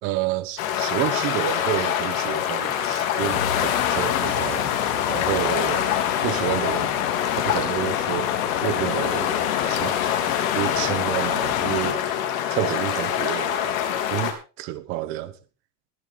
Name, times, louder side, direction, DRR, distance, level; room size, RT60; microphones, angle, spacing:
voice 1, 0.0-4.8 5.1-5.9 6.2-6.9 7.4-8.3 8.6-9.4 9.7-10.2 10.5-12.0 12.5-13.6 14.1-15.3, right 14 dB, 25° right, 0.9 m, -29 dB
sound 1, 0.6-14.3, left 9 dB, 60° left, 3.5 m, -25 dB
sound 2, 3.2-11.9, left 10 dB, 85° left, 2.9 m, -28 dB
20.5 x 8.2 x 3.9 m
supercardioid pair, 175°, 45 cm